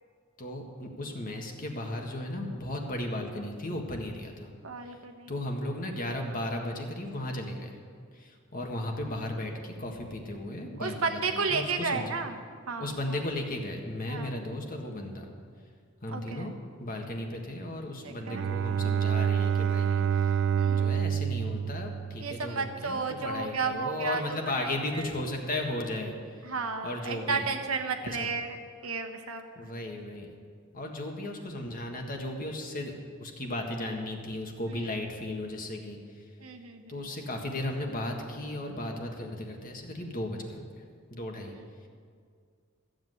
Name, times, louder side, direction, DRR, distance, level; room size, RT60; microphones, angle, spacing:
voice 1, 0.4-4.5 5.3-7.8 8.1-12.0 12.8-15.3 16.0-16.5 16.8-20.4 20.7-26.5 26.8-27.5 28.0-28.3 29.6-30.3 30.7-32.9 33.2-36.2 36.9-40.6 41.1-41.6, left 1 dB, 40° left, 2 dB, 1.7 m, -35 dB
voice 2, 4.6-5.3 10.8-12.4 12.7-12.9 14.1-14.3 16.1-16.5 18.0-18.5 20.6-20.9 22.2-24.2 24.6-25.1 26.4-28.6 28.8-29.4 36.4-36.9, right 4 dB, 85° right, 6 dB, 1.2 m, -32 dB
Bowed string instrument, 18.2-22.7, right 8 dB, 60° right, 0.3 m, -28 dB
14.5 x 7.8 x 7.9 m, 2.1 s
head